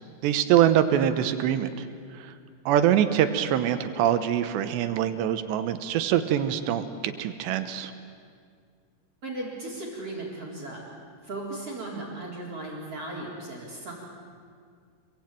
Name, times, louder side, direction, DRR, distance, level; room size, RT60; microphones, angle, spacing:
voice 1, 0.2-1.9 2.2-2.3 2.7-7.9, right 10 dB, 90° right, 9 dB, 3.3 m, -24 dB
voice 2, 9.2-10.8 11.2-13.9, right 2 dB, 35° right, -3 dB, 4.5 m, -36 dB
27.0 x 22.5 x 9.1 m, 2.2 s
omnidirectional pair, 4.9 m